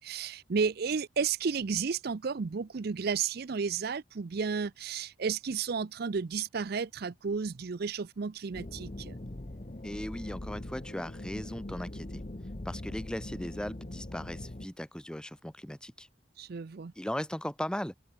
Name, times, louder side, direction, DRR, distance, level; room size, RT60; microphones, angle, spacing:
voice 1, 0.0-9.2 16.4-16.9, right 5 dB, 50° right, 0.5 m, -32 dB
sound 1, 8.5-14.7, left 1 dB, 35° left, 1.1 m, -41 dB
voice 2, 9.8-12.2 12.6-16.1 17.0-18.0, equal, 5° left, 0.8 m, -38 dB
head